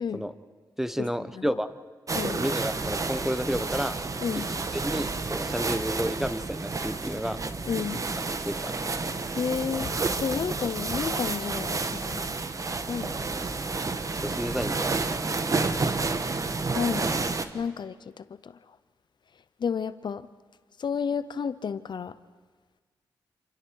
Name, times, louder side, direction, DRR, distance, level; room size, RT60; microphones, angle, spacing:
voice 1, 0.8-1.8 2.3-4.0 4.3-4.4 4.7-7.4 7.9-8.7 14.2-15.1, equal, 5° right, 1.1 m, -31 dB
sound 1, 2.1-17.5, right 3 dB, 40° right, 1.4 m, -30 dB
voice 2, 7.7-8.0 9.4-9.9 10.2-11.8 12.1-12.3 12.9-13.2 16.7-17.2 17.5-17.9 19.6-20.2 20.8-22.1, left 6 dB, 60° left, 0.7 m, -30 dB
28.0 x 28.0 x 4.7 m
cardioid pair, 60°, 8 cm